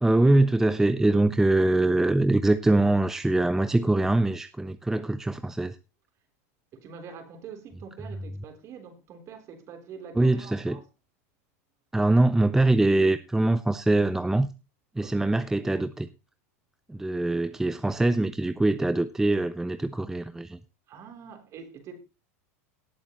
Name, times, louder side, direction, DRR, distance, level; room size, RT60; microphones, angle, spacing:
voice 1, 0.0-5.8 10.2-10.8 11.9-14.5 15.0-16.1 16.9-20.6, right 2 dB, 5° right, 0.5 m, -23 dB
voice 2, 6.7-10.9 14.9-15.3 20.9-22.0, right 6 dB, 40° right, 3.5 m, -45 dB
18.0 x 8.1 x 3.0 m
supercardioid pair, 130°, 8 cm